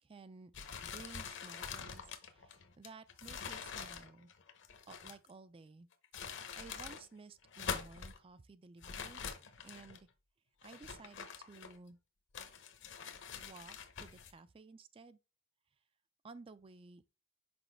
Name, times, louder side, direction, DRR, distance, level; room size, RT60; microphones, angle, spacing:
voice 1, 0.0-0.5 0.8-4.3 4.9-5.9 6.5-9.2 9.6-10.1 10.6-12.0 13.3-15.2 16.2-17.0, right 4 dB, 25° right, 0.3 m, -55 dB
sound 1, 0.5-5.3 5.9-7.0 7.4-8.2 8.8-10.0 10.6-11.9 12.3-14.3, left 6 dB, 55° left, 0.8 m, -45 dB
6.1 x 5.0 x 3.3 m
head